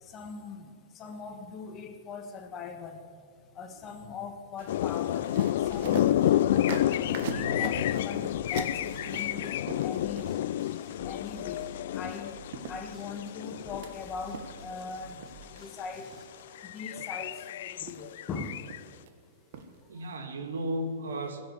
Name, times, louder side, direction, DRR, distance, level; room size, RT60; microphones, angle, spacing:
voice 1, 0.0-3.1 3.5-5.3 5.6-6.1 7.0-10.3 10.7-11.7 12.0-12.3 12.7-15.2 15.6-16.1 16.6-18.6, left 4 dB, 25° left, 7 dB, 1.3 m, -40 dB
sound 1, 4.6-10.6 12.1-12.2 12.5-13.9 14.3-14.9 15.2-15.6 16.1-16.4 16.8-17.4 17.8-18.3 18.6-19.1 19.5-19.7 20.1-20.2, right 6 dB, 55° right, 1.4 m, -42 dB
sound 2, 4.7-15.1 15.6-15.8 16.2-18.8, left 12 dB, 60° left, 0.3 m, -30 dB
sound 3, 5.6-16.3, right 3 dB, 10° right, 1.5 m, -52 dB
voice 2, 19.9-21.4, right 1 dB, 85° right, 6 dB, 1.9 m, -35 dB
16.0 x 7.4 x 8.3 m, 2.3 s
hypercardioid pair, 145°, 0 cm